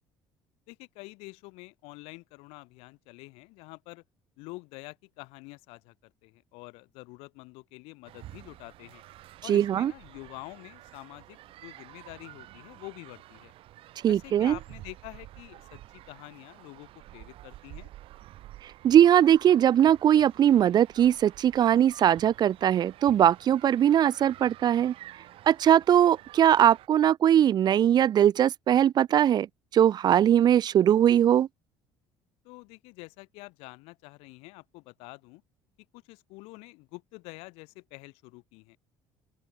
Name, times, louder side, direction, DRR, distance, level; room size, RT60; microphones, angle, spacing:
voice 1, 0.7-4.0 4.4-9.0 9.4-13.5 14.1-17.9 32.4-35.4 35.9-38.8, left 25 dB, 80° left, 6.8 m, -47 dB
sound 1, 8.0-26.9, right 15 dB, 65° right, 2.6 m, -50 dB
voice 2, 9.5-9.9 14.0-14.6 18.8-24.9 25.5-29.5 29.7-31.5, right 10 dB, 45° right, 0.5 m, -21 dB
open air
supercardioid pair, 95°, 10 cm